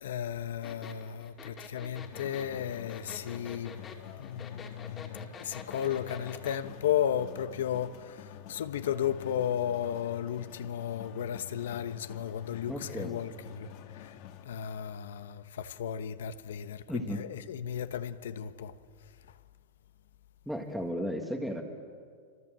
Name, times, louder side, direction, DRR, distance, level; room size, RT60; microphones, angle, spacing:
voice 1, 0.0-3.8 4.2-14.2 14.4-18.8, left 9 dB, 85° left, 1.2 m, -34 dB
sound 1, 0.6-6.6, left 6 dB, 20° left, 2.4 m, -46 dB
sound 2, 2.0-14.5, left 11 dB, 45° left, 1.8 m, -48 dB
voice 2, 12.7-13.1 16.9-17.2 20.4-21.6, equal, ahead, 1.5 m, -34 dB
26.5 x 25.0 x 7.7 m
supercardioid pair, 165°, 0 cm